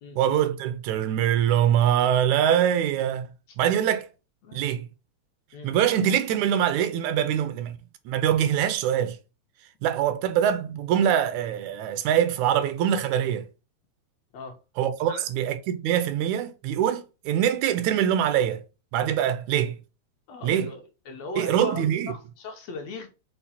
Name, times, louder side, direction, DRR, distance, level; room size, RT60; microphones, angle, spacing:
voice 1, 0.2-3.2 3.6-4.1 4.5-4.9 5.6-7.8 8.1-9.2 9.8-13.5 14.8-18.6 18.9-19.8 20.4-20.7 21.4-22.1, right 10 dB, 80° right, 1.9 m, -23 dB
voice 2, 20.3-23.1, left 3 dB, 70° left, 1.8 m, -38 dB
5.7 x 2.1 x 4.1 m
omnidirectional pair, 3.3 m